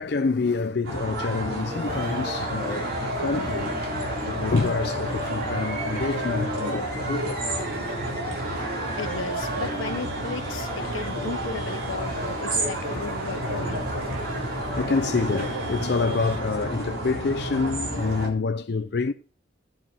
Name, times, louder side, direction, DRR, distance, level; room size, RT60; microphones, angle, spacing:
voice 1, 0.0-2.9 3.2-3.7 4.3-7.5 10.7-11.1 12.5-12.9 13.4-19.1, left 4 dB, 55° left, 0.5 m, -28 dB
sound 1, 0.8-18.3, right 1 dB, 90° right, 4.0 m, -31 dB
sound 2, 1.9-16.4, right 1 dB, 50° right, 2.8 m, -34 dB
voice 2, 9.0-13.8, left 4 dB, 85° left, 0.9 m, -35 dB
14.0 x 7.4 x 4.4 m
head